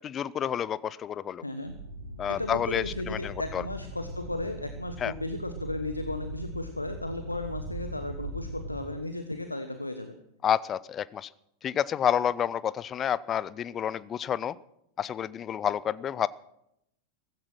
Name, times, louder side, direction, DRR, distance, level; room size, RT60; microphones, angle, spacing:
voice 1, 0.0-1.4 2.2-3.6 5.0-5.1 10.4-11.3 11.6-14.6 15.0-16.3, left 9 dB, 25° left, 20 dB, 0.5 m, -29 dB
voice 2, 1.4-1.7 2.3-10.1, left 2 dB, 85° left, 9 dB, 1.0 m, -35 dB
sound 1, 1.6-8.7, right 1 dB, 80° right, 3.1 m, -40 dB
15.5 x 15.0 x 6.2 m, 0.80 s
figure-of-eight pair, 90°, 0 cm